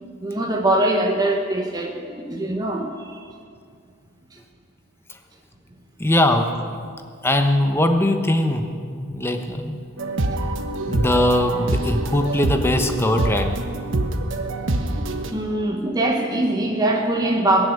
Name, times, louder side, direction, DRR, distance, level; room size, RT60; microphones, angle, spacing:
voice 1, 0.2-3.2 4.3-4.4 15.3-17.7, right 1 dB, 20° right, 1 dB, 1.3 m, -22 dB
voice 2, 6.0-6.7 7.2-9.8 10.9-13.6, left 1 dB, 10° left, 5 dB, 1.0 m, -21 dB
sound 1, 10.0-15.3, right 2 dB, 65° right, 1.2 m, -25 dB
21.5 x 7.4 x 8.8 m, 2.2 s
head